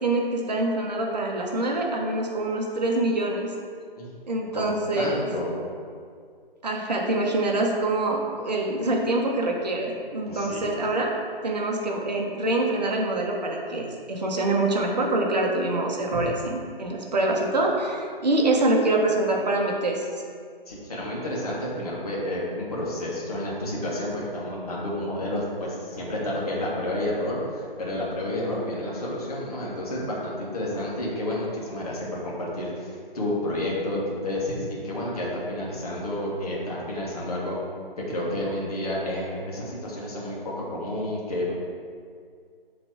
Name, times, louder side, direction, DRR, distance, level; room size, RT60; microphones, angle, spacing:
voice 1, 0.0-3.5 4.3-5.3 6.6-11.1 11.4-20.2, right 2 dB, 45° right, 0 dB, 1.0 m, -25 dB
voice 2, 4.5-5.5 10.2-10.9 20.7-37.6 38.1-41.5, left 1 dB, 40° left, -5 dB, 1.5 m, -30 dB
7.2 x 3.3 x 4.7 m, 2.1 s
figure-of-eight pair, 155°, 29 cm